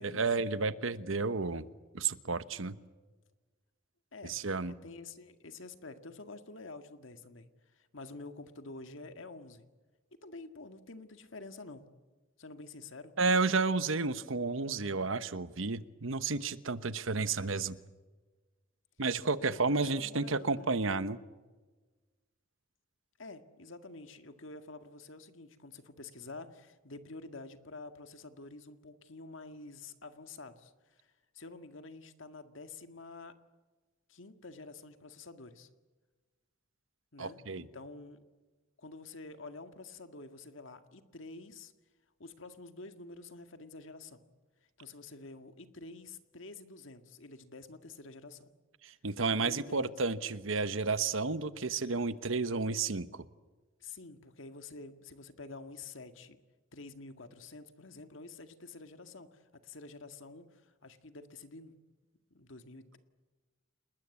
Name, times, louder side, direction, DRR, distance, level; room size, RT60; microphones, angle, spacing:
voice 1, 0.0-1.6 1.9-2.8 4.2-4.7 13.2-17.8 19.0-21.2 37.2-37.7 48.8-53.2, right 4 dB, 75° right, 14 dB, 1.1 m, -31 dB
voice 2, 4.1-9.7 10.2-11.8 12.4-13.1 19.5-20.7 23.2-33.3 34.1-35.7 37.1-38.2 38.8-41.7 42.2-44.3 44.8-48.5 49.4-49.9 53.8-56.4 56.7-61.7 62.3-63.0, left 3 dB, 70° left, 8 dB, 1.9 m, -49 dB
30.0 x 20.5 x 8.4 m, 1.3 s
head